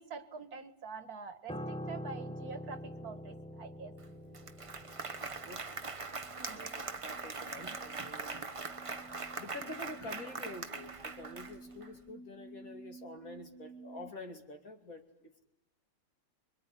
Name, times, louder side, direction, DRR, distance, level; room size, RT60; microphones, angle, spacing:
voice 1, 0.0-3.9 6.4-6.7, right 4 dB, 60° right, 11 dB, 2.0 m, -46 dB
Piano, 1.5-10.9 11.1-11.4, equal, 5° left, 0.9 m, -47 dB
Applause, 4.0-4.1 4.3-11.9, right 4 dB, 25° right, 0.9 m, -42 dB
sound 1, 4.9-14.1, right 3 dB, 75° left, 2.3 m, -54 dB
voice 2, 6.5-8.5 9.0-15.3, left 2 dB, 50° left, 4 dB, 3.2 m, -48 dB
25.5 x 23.0 x 10.0 m, 0.87 s
omnidirectional pair, 1.9 m